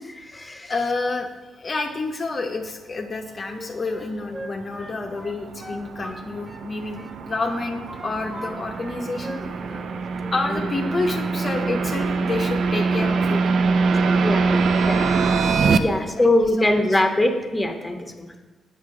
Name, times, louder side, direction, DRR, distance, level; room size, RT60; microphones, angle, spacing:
voice 1, 0.0-0.7 10.5-10.6 13.9-15.1 15.8-18.4, left 1 dB, 10° left, 4 dB, 1.0 m, -23 dB
voice 2, 0.7-7.0 7.3-9.4 10.3-13.4 15.9-17.0, left 3 dB, 40° left, 2 dB, 0.6 m, -29 dB
Wind instrument woodwind instrument, 3.5-6.7 6.9-8.5 8.8-9.9 10.1-10.4, right 1 dB, 20° right, 1.0 m, -40 dB
sound 1, 4.3-15.8, right 4 dB, 65° right, 0.4 m, -24 dB
7.4 x 5.4 x 3.8 m, 1.2 s
supercardioid pair, 50°, 0 cm